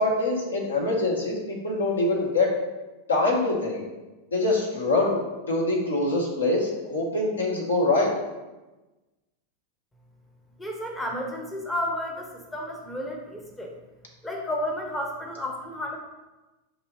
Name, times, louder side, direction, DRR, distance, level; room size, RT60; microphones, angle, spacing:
voice 1, 0.0-2.5 3.1-3.8 4.3-5.2 5.5-8.1, left 2 dB, 75° left, -2 dB, 1.1 m, -24 dB
voice 2, 10.6-13.7 14.2-16.0, left 1 dB, 10° left, 1 dB, 0.7 m, -32 dB
6.4 x 2.7 x 3.0 m, 1.1 s
figure-of-eight pair, 90°, 0 cm